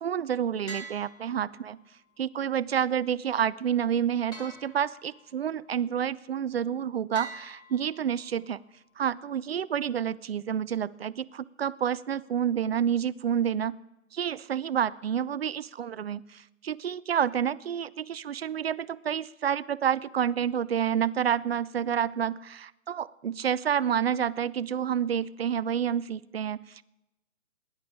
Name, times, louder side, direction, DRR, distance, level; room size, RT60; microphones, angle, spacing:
voice 1, 0.0-1.8 2.2-8.6 9.0-13.8 14.1-26.8, right 9 dB, 50° right, 18 dB, 0.4 m, -29 dB
sound 1, 0.7-1.9 4.3-5.4 7.2-8.4, right 2 dB, 10° left, 1.5 m, -45 dB
18.5 x 10.5 x 4.9 m, 0.92 s
hypercardioid pair, 140°, 41 cm